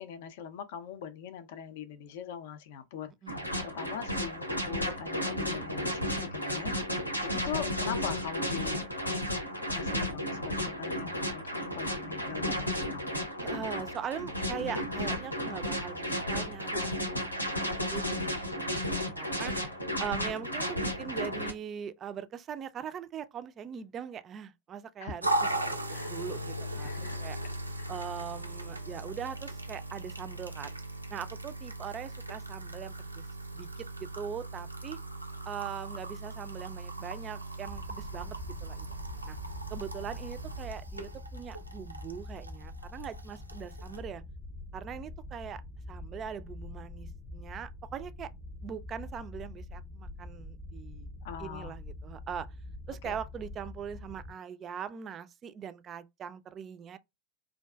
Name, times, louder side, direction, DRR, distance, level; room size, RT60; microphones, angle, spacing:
voice 1, 0.0-6.8 7.3-8.8 9.7-13.1 25.0-25.1 25.6-26.3 26.8-27.2 27.8-28.0 51.2-51.8 53.0-53.2, left 8 dB, 50° left, 0.4 m, -42 dB
sound 1, 3.3-21.5, equal, 90° left, 0.6 m, -33 dB
voice 2, 13.4-17.5 17.9-19.5 20.0-25.3 25.6-27.4 27.9-30.7 31.1-33.2 33.5-35.0 35.5-38.9 39.2-39.4 39.7-44.2 44.7-45.6 45.9-48.3 48.6-51.1 51.4-52.5 52.9-57.0, right 8 dB, 25° right, 0.4 m, -41 dB
sound 2, 25.2-44.0, right 1 dB, 85° right, 0.5 m, -38 dB
sound 3, 37.7-54.3, left 2 dB, 15° left, 0.7 m, -45 dB
4.5 x 2.4 x 2.3 m
figure-of-eight pair, 90°, 0 cm